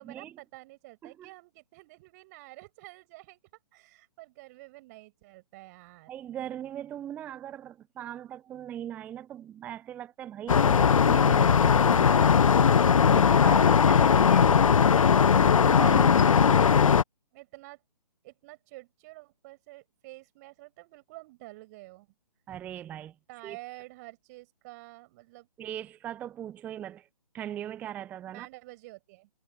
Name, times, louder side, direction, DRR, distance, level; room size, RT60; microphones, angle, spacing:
voice 1, 0.0-3.4 3.7-6.1 13.4-14.9 17.3-17.8 18.2-22.1 23.3-25.5 28.3-29.3, right 21 dB, 25° right, 5.6 m, -49 dB
voice 2, 6.1-12.5 13.1-14.5 15.6-16.1 22.5-23.2 23.4-23.6 25.6-27.1 27.3-28.5, right 11 dB, 5° right, 0.7 m, -39 dB
sound 1, 10.5-17.0, left 7 dB, 50° left, 0.5 m, -19 dB
figure-of-eight pair, 135°, 21 cm